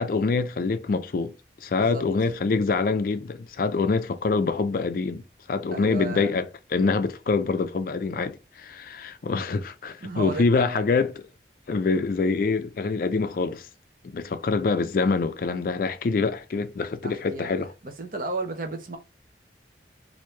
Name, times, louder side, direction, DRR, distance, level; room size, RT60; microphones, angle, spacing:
voice 1, 0.0-1.3 1.6-5.2 5.5-11.2 11.7-13.7 14.1-17.7, left 4 dB, 50° left, 0.4 m, -25 dB
voice 2, 5.7-6.3 10.0-10.8 17.0-17.5 17.8-19.0, right 3 dB, 50° right, 0.7 m, -34 dB
3.1 x 2.6 x 3.2 m
head